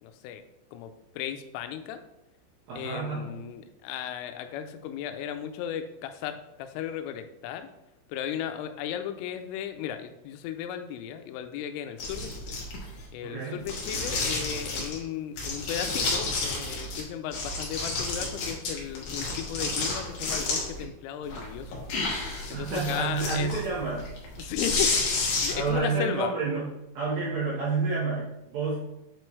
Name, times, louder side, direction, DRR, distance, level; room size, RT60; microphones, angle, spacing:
voice 1, 0.0-0.4 0.7-2.0 2.7-7.7 8.1-12.6 13.1-21.7 22.5-23.5 24.4-26.3, left 9 dB, 90° left, 8 dB, 3.2 m, -35 dB
voice 2, 2.7-3.3 13.2-13.6 22.5-24.1 25.5-26.7 26.9-28.8, right 4 dB, 70° right, -6 dB, 2.3 m, -29 dB
sound 1, 12.0-13.0 13.6-15.0 15.4-17.0 17.3-20.8 21.2-25.8, left 3 dB, 75° left, 1.8 m, -31 dB
8.3 x 4.6 x 3.1 m, 0.88 s
omnidirectional pair, 5.7 m